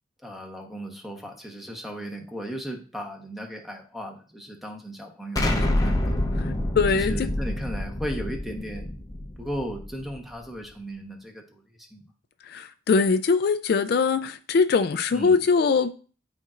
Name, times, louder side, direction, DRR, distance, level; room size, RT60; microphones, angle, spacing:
voice 1, 0.2-6.1 6.9-9.0 9.4-12.0 15.1-15.4, equal, ahead, 1.0 m, -36 dB
Explosion, 5.4-10.2, left 1 dB, 20° left, 0.7 m, -27 dB
voice 2, 6.4-7.3 12.5-15.9, left 5 dB, 55° left, 0.3 m, -22 dB
11.0 x 4.3 x 2.5 m
head